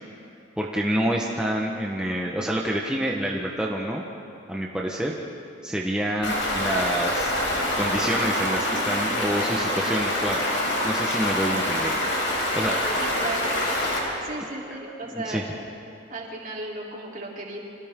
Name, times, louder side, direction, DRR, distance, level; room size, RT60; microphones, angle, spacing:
voice 1, 0.6-4.0 4.5-5.1 5.6-7.3 7.8-10.4 10.8-12.0 12.3-13.0 15.1-15.4, right 1 dB, 5° right, -2 dB, 1.1 m, -27 dB
Stream, 6.2-14.0, left 1 dB, 75° left, 5.0 m, -25 dB
voice 2, 13.0-13.6 14.2-15.4 16.1-17.6, right 2 dB, 45° right, -3 dB, 3.6 m, -35 dB
30.0 x 25.5 x 3.7 m, 2.7 s
head